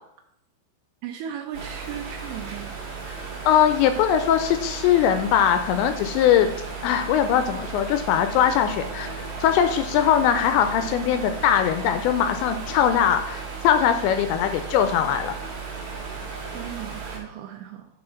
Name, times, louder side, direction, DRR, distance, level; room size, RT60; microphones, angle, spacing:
voice 1, 1.0-2.7 16.0-16.1 16.5-17.9, right 9 dB, 80° right, 4 dB, 2.6 m, -36 dB
sound 1, 1.5-17.2, right 4 dB, 55° right, 2.4 m, -35 dB
voice 2, 3.5-6.5 6.8-15.3, left 9 dB, 85° left, 8 dB, 2.6 m, -21 dB
7.6 x 4.4 x 5.7 m, 0.78 s
omnidirectional pair, 5.4 m